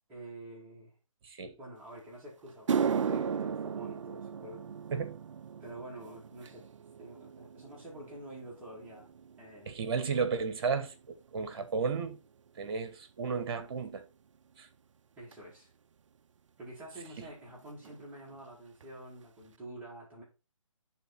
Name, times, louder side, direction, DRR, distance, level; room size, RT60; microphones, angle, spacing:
voice 1, 0.1-0.9 1.6-4.6 5.6-6.7 7.0-9.1 9.4-9.7 11.6-11.7 15.2-15.7 16.6-20.2, right 1 dB, 10° right, 2.3 m, -47 dB
voice 2, 1.2-1.5 4.9-5.2 9.7-12.2 12.6-14.0 14.6-14.7 17.2-17.3, right 5 dB, 45° right, 1.4 m, -33 dB
sound 1, 1.9-2.0 2.5-11.0 11.3-11.7 12.5-12.6 15.3-15.4 17.0-17.1 17.3-17.6 17.8-18.4 18.8-18.9 19.4-19.5, right 6 dB, 65° right, 0.5 m, -36 dB
10.0 x 3.9 x 4.3 m
figure-of-eight pair, 150°, 17 cm